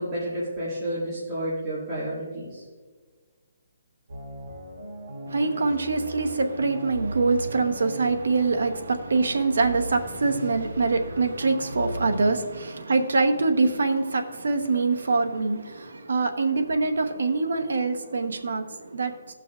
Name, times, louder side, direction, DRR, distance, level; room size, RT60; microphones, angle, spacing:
voice 1, 0.0-2.6, right 1 dB, 20° right, -10 dB, 1.8 m, -30 dB
sound 1, 4.1-12.3, right 1 dB, 55° right, 2.2 m, -38 dB
voice 2, 5.3-19.1, right 3 dB, 85° right, 6 dB, 0.9 m, -24 dB
17.0 x 5.9 x 2.4 m, 1.5 s
hypercardioid pair, 175°, 0 cm